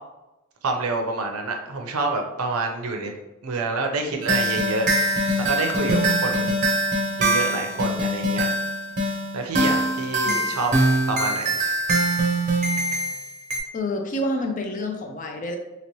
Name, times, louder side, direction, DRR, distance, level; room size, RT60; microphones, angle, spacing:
voice 1, 0.6-3.1 3.4-4.9 5.5-6.5 7.2-8.5 9.0-10.7 11.1-11.6, right 3 dB, 85° right, 3 dB, 0.6 m, -27 dB
sound 1, 4.2-13.6, right 1 dB, 35° right, 0.6 m, -23 dB
voice 2, 13.7-15.6, left 1 dB, 35° left, 4 dB, 0.4 m, -28 dB
3.0 x 2.9 x 3.0 m, 0.98 s
head